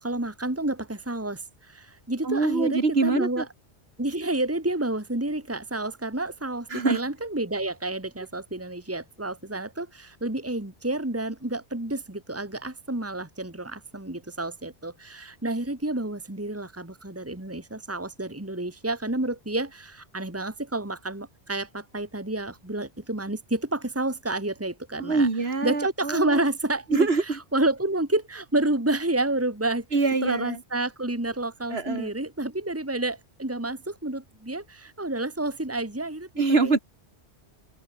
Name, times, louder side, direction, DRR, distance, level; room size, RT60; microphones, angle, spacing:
voice 1, 0.0-3.5 4.0-25.3 25.6-27.1 27.5-29.9 30.2-36.8, right 2 dB, 15° right, 2.2 m, -29 dB
voice 2, 2.2-3.4 6.7-7.0 25.0-26.5 26.9-27.4 29.9-30.6 31.7-32.1 36.4-36.8, right 3 dB, 65° right, 2.6 m, -24 dB
open air
omnidirectional pair, 1.1 m